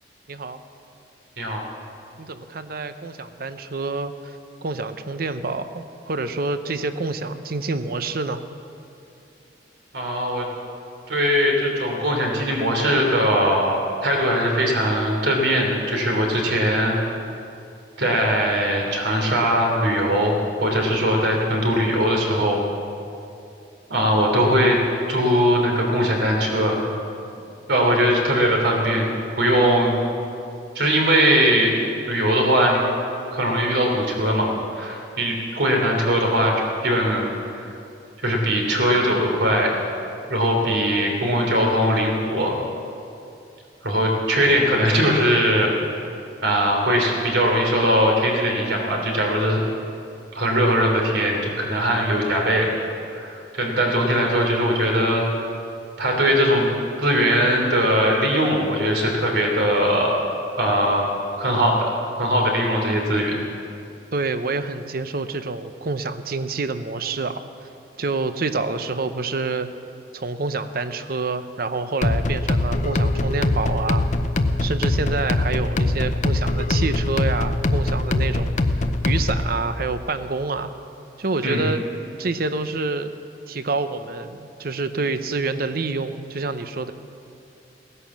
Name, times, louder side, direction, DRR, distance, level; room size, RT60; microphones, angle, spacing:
voice 1, 0.3-0.6 2.2-8.4 64.1-67.4 68.0-69.7 70.1-74.1 74.6-78.6 79.0-80.7 81.2-81.8 82.2-83.1 83.5-86.9, right 3 dB, 55° right, 10 dB, 0.8 m, -27 dB
voice 2, 9.9-10.4 11.1-16.9 18.0-22.6 23.9-24.8 25.1-26.8 27.7-29.1 29.4-29.9 30.7-31.7 32.1-32.8 33.3-34.5 34.7-36.5 36.8-37.3 37.5-37.6 38.2-39.7 40.3-42.6 43.8-45.7 46.4-49.6 50.3-52.7 53.1-55.2 56.0-56.7 57.0-60.2 60.6-61.1 61.4-61.8 62.2-63.3 81.4-81.6, equal, 85° right, 1 dB, 3.3 m, -20 dB
sound 1, 72.0-79.5, left 2 dB, 45° left, 0.7 m, -22 dB
17.0 x 11.0 x 7.3 m, 2.6 s
head